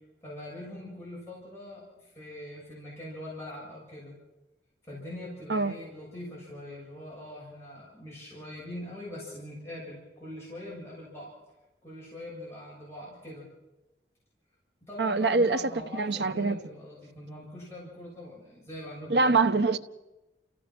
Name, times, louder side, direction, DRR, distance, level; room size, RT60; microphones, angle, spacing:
voice 1, 0.2-4.1 4.8-11.3 11.8-13.5 14.8-19.5, left 1 dB, 15° left, 7.2 m, -42 dB
voice 2, 15.0-16.6 19.1-19.8, right 3 dB, 70° right, 1.0 m, -24 dB
30.0 x 16.0 x 6.1 m
head